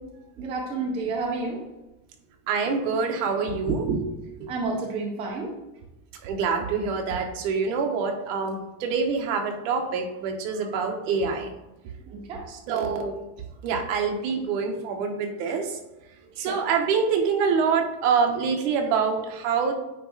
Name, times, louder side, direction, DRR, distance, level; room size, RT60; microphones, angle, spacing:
voice 1, 0.4-1.6 4.5-5.5 12.1-12.4 16.3-16.6, right 3 dB, 15° right, -1 dB, 0.3 m, -30 dB
voice 2, 2.5-4.1 4.4-4.5 6.2-11.5 12.5-13.1 13.6-15.8 16.4-19.7, right 5 dB, 55° right, 3 dB, 1.2 m, -26 dB
9.2 x 3.1 x 4.0 m, 0.98 s
cardioid pair, 170°, 44 cm